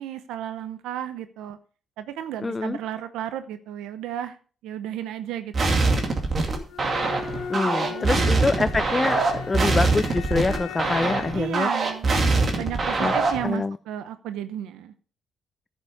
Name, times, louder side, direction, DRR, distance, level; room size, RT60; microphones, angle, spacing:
voice 1, 0.0-1.6 2.0-4.4 4.6-5.9 7.5-8.1 11.3-12.1 12.5-14.9, right 11 dB, 90° right, 11 dB, 0.7 m, -33 dB
voice 2, 2.4-2.8 7.5-11.7 13.0-13.1 13.4-13.8, left 3 dB, 25° left, 14 dB, 0.4 m, -25 dB
sound 1, 5.5-13.5, right 3 dB, 45° right, 2.4 m, -23 dB
Bowed string instrument, 6.7-11.5, left 8 dB, 85° left, 1.3 m, -37 dB
10.5 x 7.4 x 4.8 m, 0.39 s
cardioid pair, 90°, 0 cm